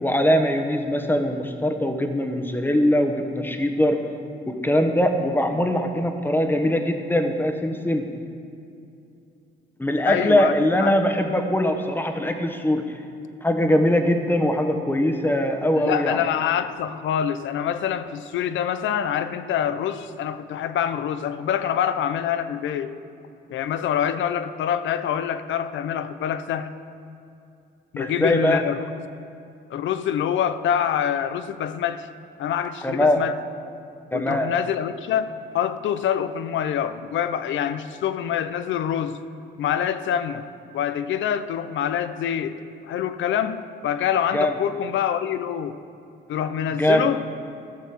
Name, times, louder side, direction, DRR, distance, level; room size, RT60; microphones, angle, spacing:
voice 1, 0.0-4.0 4.5-8.1 9.8-12.9 13.4-16.2 28.0-28.6 32.8-33.2 34.1-34.5 44.3-44.5 46.8-47.1, left 1 dB, 10° left, 5 dB, 1.1 m, -21 dB
voice 2, 10.0-10.9 15.7-23.0 23.5-26.7 27.9-28.8 29.7-32.1 32.4-33.4 34.1-39.2 39.6-40.5 40.7-42.6 42.9-45.8 46.3-47.3, left 9 dB, 75° left, 12 dB, 0.6 m, -25 dB
13.0 x 6.3 x 7.2 m, 2.6 s
cardioid pair, 90°, 20 cm